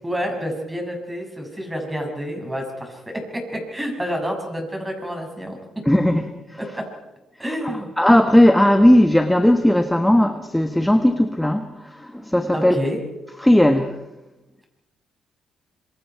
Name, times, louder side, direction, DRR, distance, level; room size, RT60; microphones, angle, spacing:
voice 1, 0.0-5.6 6.7-6.8 7.4-7.9 12.5-13.0, equal, 10° right, 2 dB, 6.8 m, -28 dB
voice 2, 5.9-6.3 7.6-12.7 13.4-13.9, left 1 dB, 5° left, 7 dB, 1.3 m, -17 dB
26.0 x 24.0 x 4.7 m, 0.98 s
cardioid pair, 90°, 0 cm